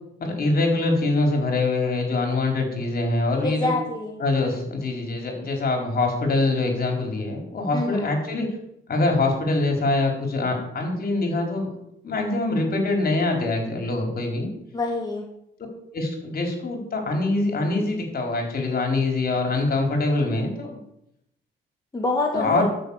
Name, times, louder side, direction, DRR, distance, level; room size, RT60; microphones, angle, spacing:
voice 1, 0.2-3.7 4.2-8.5 8.9-11.7 12.0-14.5 15.9-20.8 22.3-22.6, left 2 dB, 50° left, 2 dB, 4.3 m, -24 dB
voice 2, 3.4-4.2 7.7-8.1 14.7-15.3 21.9-22.6, left 2 dB, 20° left, 0 dB, 2.0 m, -26 dB
13.5 x 7.0 x 7.3 m, 0.78 s
cardioid pair, 90°, 20 cm